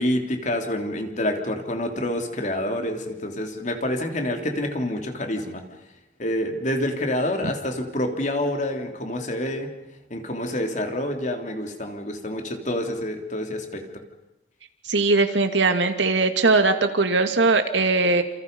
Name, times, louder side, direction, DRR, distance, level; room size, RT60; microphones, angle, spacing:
voice 1, 0.0-5.6 6.2-9.7 10.1-13.9, left 1 dB, 40° left, 4 dB, 3.3 m, -27 dB
voice 2, 14.9-18.2, right 3 dB, 80° right, 7 dB, 2.4 m, -20 dB
29.5 x 28.0 x 5.5 m, 0.94 s
head